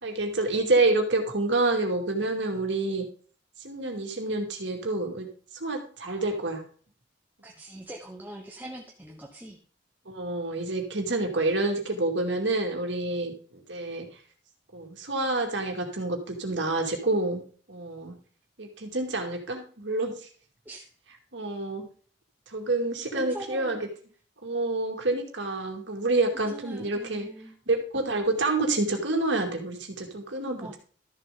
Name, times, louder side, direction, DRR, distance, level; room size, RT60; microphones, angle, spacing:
voice 1, 0.0-3.1 3.6-6.6 10.1-14.1 14.7-18.2 18.6-20.1 21.3-21.9 22.5-23.9 24.4-27.3 27.7-30.7, right 2 dB, 70° right, 3 dB, 2.3 m, -28 dB
voice 2, 7.4-9.6 20.6-20.8 23.2-23.8 26.5-27.5 30.6-30.8, right 1 dB, 10° right, 0 dB, 1.1 m, -42 dB
13.0 x 7.1 x 3.8 m, 0.43 s
head